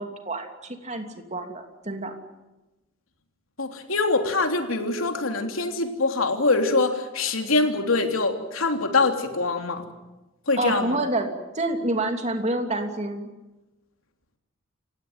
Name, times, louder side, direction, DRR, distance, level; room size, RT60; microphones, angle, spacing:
voice 1, 0.0-2.1 10.6-13.3, right 2 dB, 35° right, 5 dB, 2.9 m, -28 dB
voice 2, 3.6-9.8 10.5-11.0, left 3 dB, 85° left, 4 dB, 3.3 m, -24 dB
29.0 x 16.5 x 9.4 m, 1.1 s
head